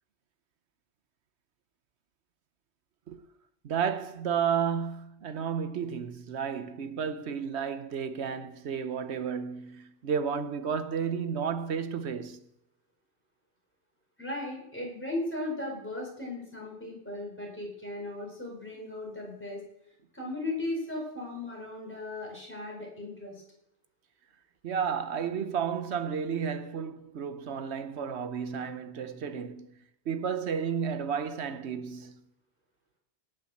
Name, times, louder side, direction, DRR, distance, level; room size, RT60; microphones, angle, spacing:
voice 1, 3.6-12.4 24.6-29.8 30.1-32.2, right 7 dB, 75° right, 1.2 m, -32 dB
voice 2, 14.2-19.6 20.1-23.4, left 2 dB, 10° left, 4.7 m, -37 dB
18.0 x 6.2 x 6.5 m
omnidirectional pair, 1.1 m